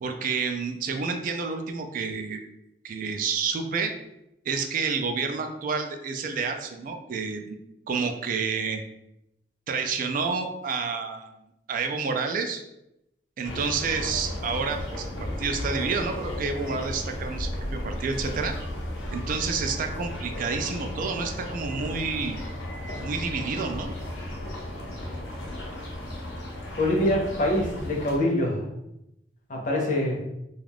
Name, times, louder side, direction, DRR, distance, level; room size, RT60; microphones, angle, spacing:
voice 1, 0.0-2.4 2.8-3.9 4.4-7.6 7.9-8.8 9.7-11.3 11.7-12.6 13.4-18.6 19.1-22.4 23.0-23.9, right 5 dB, 50° right, 6 dB, 0.3 m, -29 dB
sound 1, 13.4-28.2, left 1 dB, 85° left, 0.7 m, -34 dB
voice 2, 26.8-28.6 29.5-30.2, left 1 dB, 45° left, 0 dB, 0.6 m, -24 dB
2.4 x 2.3 x 3.3 m, 0.85 s
head